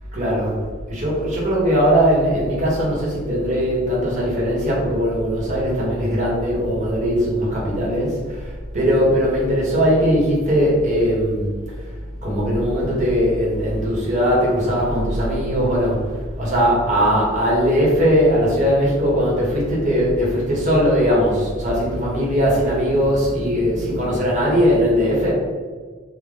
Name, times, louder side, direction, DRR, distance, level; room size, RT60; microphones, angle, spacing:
voice 1, 0.1-0.6 0.9-11.9 12.2-25.3, equal, 40° right, -4 dB, 1.0 m, -19 dB
3.5 x 2.1 x 3.6 m, 1.5 s
head